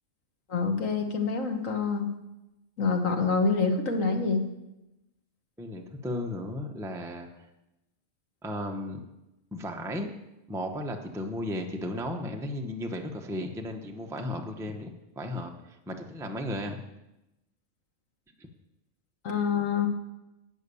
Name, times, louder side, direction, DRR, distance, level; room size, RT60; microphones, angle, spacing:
voice 1, 0.5-2.1 2.8-4.5 19.2-19.9, left 4 dB, 80° left, 4 dB, 1.8 m, -26 dB
voice 2, 5.6-7.5 8.4-9.0 9.5-10.1 10.5-16.8 18.4-18.5, left 1 dB, 5° right, 3 dB, 0.8 m, -35 dB
11.5 x 8.5 x 6.9 m, 0.94 s
omnidirectional pair, 1.4 m